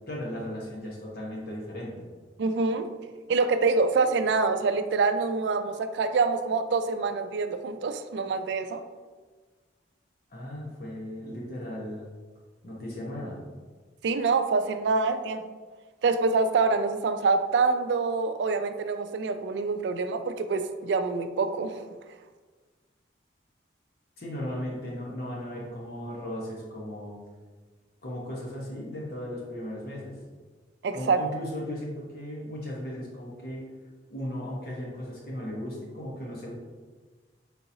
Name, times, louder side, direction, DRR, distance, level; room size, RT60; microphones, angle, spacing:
voice 1, 0.1-2.1 10.3-12.1 12.6-13.4 24.2-27.2 28.0-30.2 30.9-33.6 34.1-36.5, left 1 dB, 55° left, -3 dB, 1.0 m, -36 dB
voice 2, 2.4-2.9 3.3-8.8 14.0-15.4 16.0-21.7 30.8-31.2, right 4 dB, 75° right, 9 dB, 0.3 m, -26 dB
4.2 x 3.7 x 2.7 m, 1.4 s
head